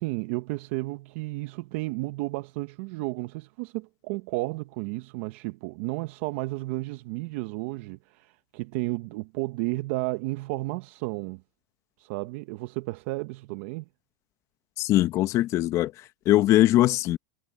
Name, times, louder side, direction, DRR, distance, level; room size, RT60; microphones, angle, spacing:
voice 1, 0.0-11.4 12.0-13.8, right 22 dB, 55° right, 1.0 m, -32 dB
voice 2, 14.8-15.9 16.3-17.2, left 15 dB, 40° left, 1.0 m, -21 dB
supercardioid pair, 140°, 8 cm